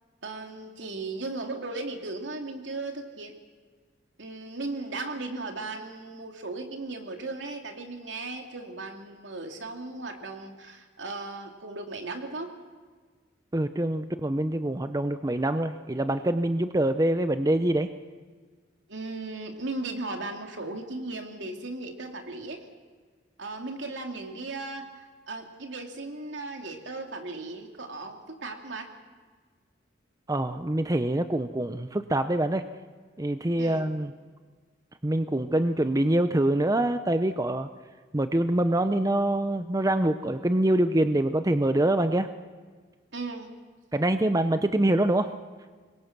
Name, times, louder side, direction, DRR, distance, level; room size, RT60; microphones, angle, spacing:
voice 1, 0.2-3.3 4.2-12.5 18.9-22.6 23.4-28.9 33.6-33.9 43.1-43.5, right 2 dB, 75° right, 3 dB, 2.9 m, -36 dB
voice 2, 13.5-17.9 30.3-32.6 33.2-34.1 35.0-37.7 38.1-42.3 43.9-45.3, right 1 dB, 20° right, 9 dB, 0.7 m, -25 dB
26.0 x 22.0 x 6.1 m, 1.5 s
head